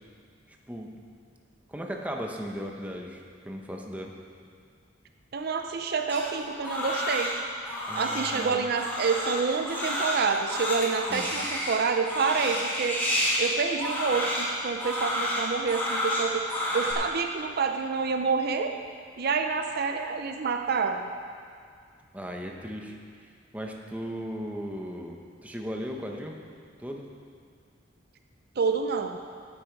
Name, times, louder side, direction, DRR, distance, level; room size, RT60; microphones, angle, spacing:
voice 1, 0.5-0.9 1.7-4.2 7.9-8.6 11.1-11.3 22.1-23.0 23.5-26.4 26.8-27.1, equal, 10° right, 1 dB, 1.0 m, -37 dB
voice 2, 5.3-7.3 8.0-13.0 13.4-16.5 16.7-18.7 19.2-21.1 28.6-29.2, right 5 dB, 55° right, 6 dB, 0.5 m, -28 dB
Crying sobbing, 6.1-16.9, left 1 dB, 10° left, 2.7 m, -30 dB
14.5 x 8.8 x 4.6 m, 2.2 s
head